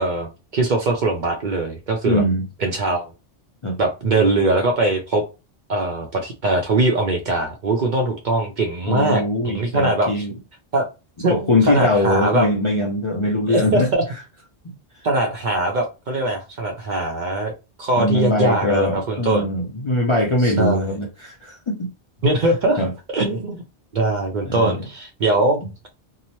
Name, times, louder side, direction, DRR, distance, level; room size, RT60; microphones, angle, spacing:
voice 1, 0.0-2.2 2.6-3.1 3.8-5.2 5.7-10.3 10.7-10.9 11.2-11.3 11.6-12.5 13.5-14.0 15.0-17.5 17.8-19.5 20.4-20.8 22.2-22.8 23.1-23.6 23.9-25.6, right 2 dB, 55° right, 0.5 m, -21 dB
voice 2, 2.1-2.4 3.6-3.8 8.9-10.3 11.3-13.9 14.6-14.7 18.0-21.9 22.8-22.9 24.5-24.9, left 1 dB, 50° left, 0.4 m, -21 dB
2.7 x 2.0 x 2.9 m
omnidirectional pair, 1.2 m